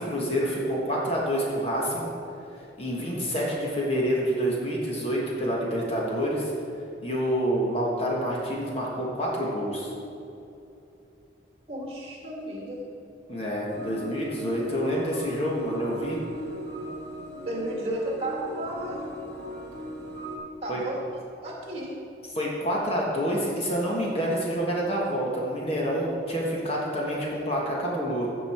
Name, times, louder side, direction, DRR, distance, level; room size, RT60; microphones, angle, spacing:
voice 1, 0.0-2.1 2.8-6.5 7.0-9.9 13.3-16.2 20.7-20.8 22.3-28.3, equal, 35° left, -3 dB, 1.4 m, -27 dB
voice 2, 11.7-12.8 17.5-19.1 20.6-21.0 21.4-22.0, right 1 dB, 30° right, -3 dB, 2.1 m, -33 dB
sound 1, 13.7-20.4, equal, 60° left, 2.3 m, -39 dB
15.5 x 5.4 x 4.4 m, 2.8 s
head